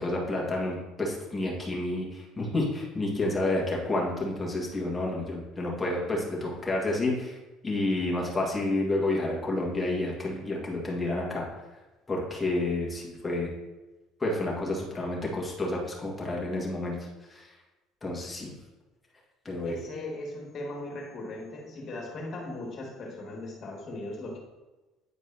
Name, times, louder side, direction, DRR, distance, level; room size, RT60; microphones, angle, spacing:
voice 1, 0.0-7.4 7.6-11.5 12.1-13.5 14.2-17.0 17.3-17.5 18.0-18.5 19.5-19.8, left 2 dB, 20° left, -3 dB, 1.9 m, -30 dB
voice 2, 19.6-24.4, left 2 dB, 45° left, 0 dB, 2.0 m, -38 dB
9.4 x 4.5 x 2.9 m, 1.1 s
supercardioid pair, 95°, 0 cm